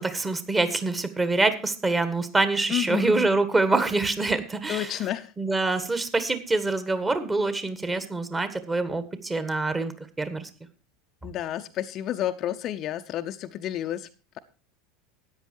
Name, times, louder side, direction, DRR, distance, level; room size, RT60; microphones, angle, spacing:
voice 1, 0.0-5.0 5.4-9.9 10.2-10.5, right 3 dB, 15° right, 11 dB, 1.6 m, -25 dB
voice 2, 2.7-3.3 4.7-5.3 11.2-14.1, left 12 dB, 40° left, 9 dB, 0.7 m, -30 dB
13.5 x 9.5 x 4.5 m, 0.34 s
figure-of-eight pair, 80°, 0 cm